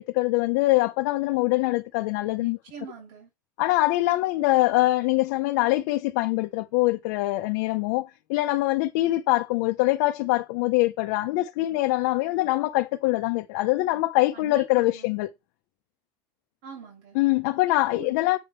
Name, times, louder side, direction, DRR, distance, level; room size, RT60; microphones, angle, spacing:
voice 1, 0.0-2.6 3.6-15.3 17.2-18.4, left 18 dB, 90° left, 0.5 m, -24 dB
voice 2, 2.4-3.3 14.3-15.1 16.6-17.2 17.8-18.1, right 6 dB, 75° right, 3.5 m, -44 dB
7.7 x 5.5 x 3.5 m
cardioid pair, 160°, 9 cm